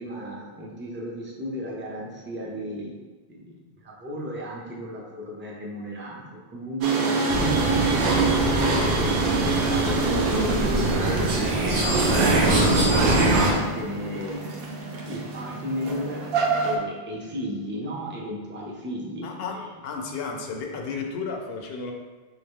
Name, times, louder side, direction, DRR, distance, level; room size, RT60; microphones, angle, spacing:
voice 1, 0.0-3.0 3.3-8.3 9.0-12.5 13.1-14.4 15.1-16.2 16.6-19.7, equal, 15° right, -3 dB, 0.4 m, -35 dB
sound 1, 6.8-16.8, right 3 dB, 65° right, 0.8 m, -27 dB
sound 2, 7.3-13.5, right 2 dB, 90° right, 1.0 m, -23 dB
voice 2, 19.2-21.9, left 4 dB, 70° left, 2 dB, 0.7 m, -33 dB
3.6 x 2.8 x 3.5 m, 1.3 s
omnidirectional pair, 1.1 m